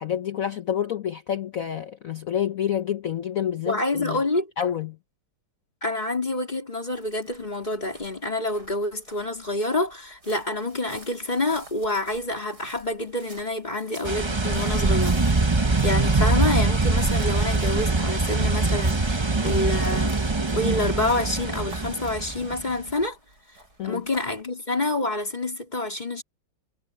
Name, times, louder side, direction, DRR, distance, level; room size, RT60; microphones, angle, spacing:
voice 1, 0.0-4.2 4.6-5.0 23.8-24.0, left 9 dB, 70° left, 0.8 m, -28 dB
voice 2, 3.7-4.5 5.8-15.2 15.8-20.2 20.5-23.2 23.8-26.2, left 2 dB, 20° left, 3.6 m, -27 dB
sound 1, 6.9-24.4, right 2 dB, 45° right, 7.4 m, -50 dB
sound 2, 14.0-22.7, right 3 dB, 30° right, 0.5 m, -23 dB
omnidirectional pair, 2.3 m